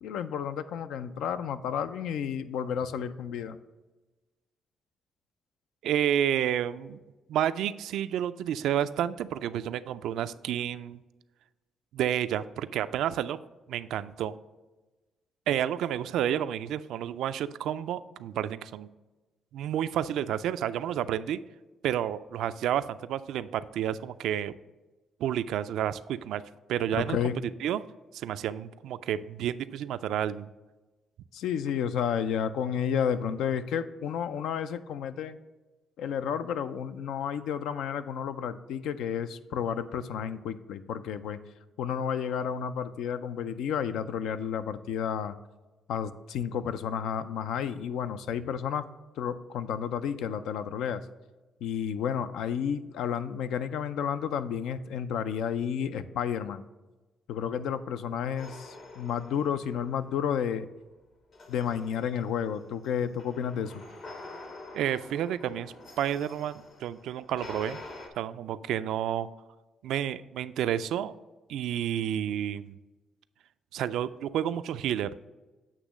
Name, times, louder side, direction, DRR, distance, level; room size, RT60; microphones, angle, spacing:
voice 1, 0.0-3.6 27.0-27.4 31.3-35.4 36.0-41.4 41.8-45.4 45.9-48.9 49.2-51.1 51.6-56.6 57.3-60.7 61.5-63.8, left 8 dB, 85° left, 12 dB, 0.4 m, -31 dB
voice 2, 5.8-7.0 7.3-11.0 11.9-13.4 13.7-14.3 15.5-18.9 19.5-21.4 21.8-24.5 25.2-26.4 26.7-27.2 27.6-27.8 28.1-30.5 64.7-67.8 68.2-69.3 69.8-71.1 71.5-72.7 73.7-75.3, right 10 dB, 80° right, 14 dB, 0.3 m, -30 dB
sound 1, 58.4-60.4 61.3-68.1, left 2 dB, 60° left, 1.4 m, -47 dB
8.2 x 3.0 x 6.1 m, 1.2 s
cardioid pair, 90°, 0 cm